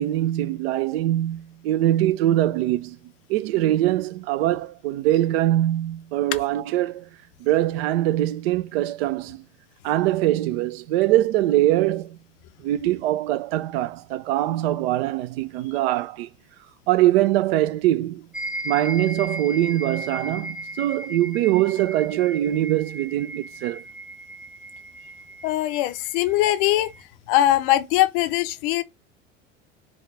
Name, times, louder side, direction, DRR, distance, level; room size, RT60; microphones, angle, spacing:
voice 1, 0.0-3.0 3.3-7.1 7.4-9.4 9.8-12.2 12.6-16.3 16.9-18.2 18.6-23.8, right 14 dB, 55° right, 0.5 m, -22 dB
sound 1, 18.3-27.0, right 1 dB, 5° right, 0.7 m, -36 dB
voice 2, 25.4-26.9 27.3-28.8, left 14 dB, 50° left, 0.6 m, -21 dB
4.9 x 2.4 x 3.9 m
figure-of-eight pair, 75°, 37 cm